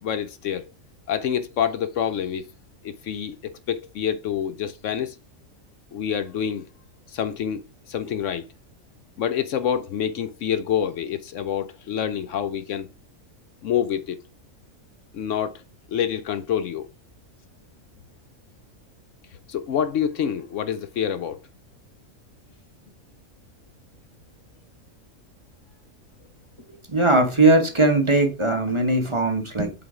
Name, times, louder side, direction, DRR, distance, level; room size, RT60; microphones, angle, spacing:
voice 1, 0.0-0.7 1.1-2.5 2.8-5.2 5.9-6.6 7.1-7.6 7.9-8.4 9.2-12.9 13.6-14.2 15.1-15.5 15.9-16.9 19.5-21.4, left 9 dB, 70° left, 0.9 m, -27 dB
voice 2, 26.9-29.7, right 2 dB, 25° right, 1.1 m, -19 dB
7.8 x 3.9 x 4.9 m
omnidirectional pair, 1.4 m